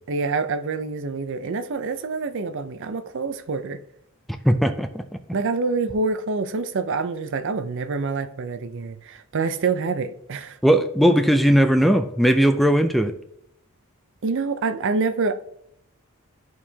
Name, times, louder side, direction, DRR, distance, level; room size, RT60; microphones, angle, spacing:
voice 1, 0.1-3.8 5.3-10.6 14.2-15.4, right 4 dB, 60° right, 0.5 m, -26 dB
voice 2, 4.4-5.0 10.6-13.1, equal, ahead, 0.4 m, -18 dB
12.0 x 4.7 x 2.8 m
head